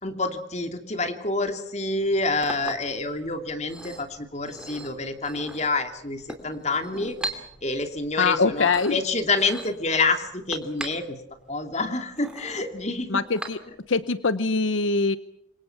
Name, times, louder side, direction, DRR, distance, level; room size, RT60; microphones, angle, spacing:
voice 1, 0.0-11.2 11.5-13.2, left 3 dB, 35° left, 7 dB, 2.7 m, -28 dB
Chink clink, 2.0-14.0, right 1 dB, 5° right, 2.9 m, -41 dB
voice 2, 8.2-9.0 13.1-13.6 13.9-15.2, left 4 dB, 80° left, 14 dB, 0.9 m, -23 dB
28.0 x 24.0 x 6.0 m, 0.76 s
head